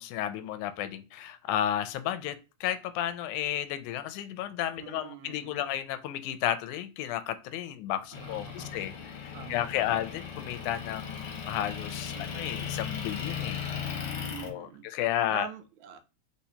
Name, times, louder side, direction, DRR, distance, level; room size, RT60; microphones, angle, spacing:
voice 1, 0.0-8.9 9.2-13.6 14.4-15.5, left 11 dB, 90° left, 2.0 m, -32 dB
voice 2, 4.8-5.7 8.1-8.9 9.3-10.0 12.1-12.7 14.2-14.9 15.3-16.0, right 7 dB, 80° right, 1.9 m, -45 dB
Motor vehicle (road) / Engine, 8.1-14.5, left 7 dB, 60° left, 1.5 m, -37 dB
4.4 x 4.1 x 2.8 m
omnidirectional pair, 3.4 m